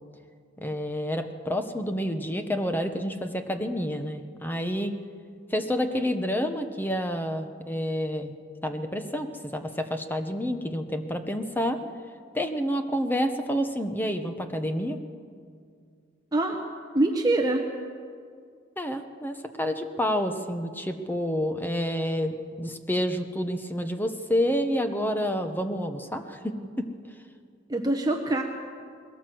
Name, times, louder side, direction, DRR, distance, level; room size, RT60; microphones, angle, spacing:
voice 1, 0.6-5.0 5.5-8.3 8.6-11.8 12.3-15.0 18.8-26.9, equal, 10° left, 7 dB, 1.1 m, -29 dB
voice 2, 16.9-17.7 27.7-28.4, right 2 dB, 20° right, 2 dB, 1.1 m, -24 dB
21.0 x 17.0 x 7.8 m, 2.2 s
head